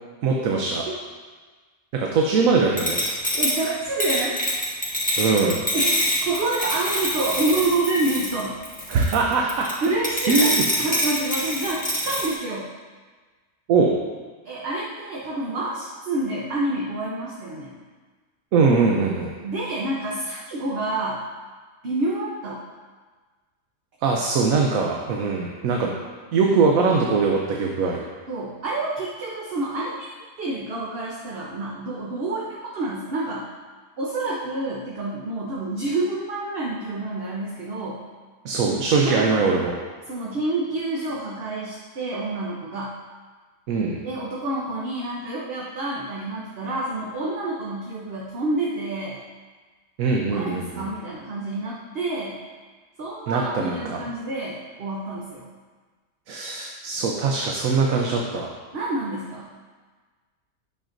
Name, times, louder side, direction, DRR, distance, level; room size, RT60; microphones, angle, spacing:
voice 1, 0.2-0.8 1.9-3.0 5.2-5.6 8.9-9.7 10.3-10.6 13.7-13.9 18.5-19.3 24.0-25.9 26.3-28.0 38.4-39.7 43.7-44.0 50.0-50.9 53.3-54.0 56.3-58.5, right 4 dB, 80° right, 0 dB, 1.1 m, -21 dB
sound 1, 2.8-12.3, equal, 5° left, 1.6 m, -25 dB
voice 2, 3.3-4.4 5.7-6.0 6.2-8.6 9.8-10.5 10.8-12.7 14.4-17.8 19.4-21.2 21.8-22.6 28.3-30.1 30.4-33.5 34.0-38.0 39.0-39.4 40.1-43.0 44.0-49.2 50.3-52.4 53.0-55.5 58.7-59.5, right 2 dB, 50° right, -4 dB, 1.0 m, -28 dB
8.9 x 6.6 x 2.6 m, 1.4 s
omnidirectional pair, 1.4 m